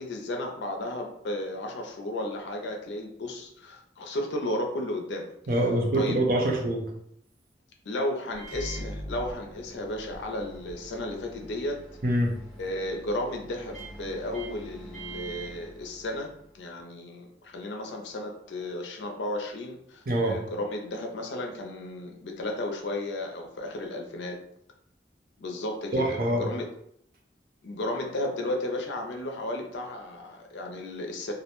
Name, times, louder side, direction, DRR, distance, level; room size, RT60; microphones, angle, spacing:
voice 1, 0.0-5.3 5.9-6.2 7.9-11.8 12.6-24.4 25.4-26.7 27.6-31.3, left 1 dB, 90° left, 2 dB, 0.5 m, -34 dB
voice 2, 5.5-6.8 12.0-12.3 20.1-20.4 25.9-26.5, right 1 dB, 55° right, 1 dB, 0.5 m, -25 dB
Microwave oven, 8.3-16.5, right 1 dB, ahead, 0.6 m, -43 dB
2.3 x 2.1 x 2.9 m, 0.72 s
head